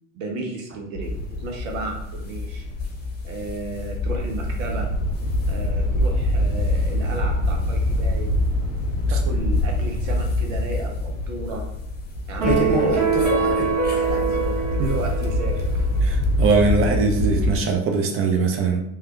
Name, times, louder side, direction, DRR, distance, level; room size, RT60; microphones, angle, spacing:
voice 1, 0.1-2.7 3.2-4.9 5.5-8.3 9.1-11.7 12.3-13.6 13.9-15.9, right 2 dB, 75° right, 2 dB, 0.7 m, -33 dB
sound 1, 1.0-17.6, left 1 dB, 75° left, 0.7 m, -25 dB
sound 2, 1.0-16.5, left 3 dB, 25° left, 0.8 m, -32 dB
sound 3, 12.4-15.9, right 5 dB, 50° right, 1.5 m, -23 dB
voice 2, 16.0-18.8, right 4 dB, 35° right, 3 dB, 0.6 m, -21 dB
3.1 x 2.3 x 3.0 m, 0.78 s
hypercardioid pair, 70°, 39 cm